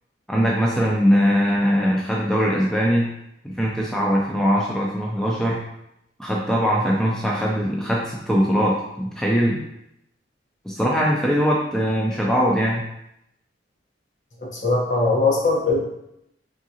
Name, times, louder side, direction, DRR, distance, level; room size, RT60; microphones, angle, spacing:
voice 1, 0.3-3.1 3.4-5.6 6.2-9.6 10.6-12.8, equal, 5° left, -3 dB, 0.4 m, -21 dB
voice 2, 14.4-15.8, left 3 dB, 45° left, -1 dB, 0.9 m, -20 dB
3.7 x 3.6 x 2.8 m, 0.81 s
head